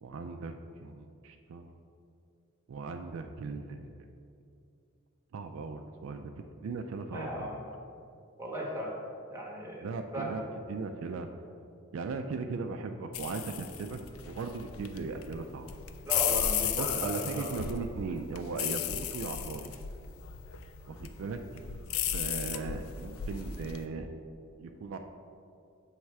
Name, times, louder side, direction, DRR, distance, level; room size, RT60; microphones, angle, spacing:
voice 1, 0.0-1.8 2.7-3.9 5.3-6.3 6.6-7.5 9.8-10.4 10.7-11.3 11.9-15.7 16.7-19.7 20.9-21.4 22.1-24.1 24.6-25.0, right 4 dB, 70° right, 6 dB, 0.3 m, -38 dB
voice 2, 7.1-7.7 8.4-9.0 9.3-10.5 16.0-17.5 22.5-22.7, equal, 15° right, -3 dB, 1.0 m, -37 dB
sound 1, 13.1-23.8, left 9 dB, 85° left, 0.4 m, -35 dB
7.3 x 3.2 x 4.6 m, 2.5 s
head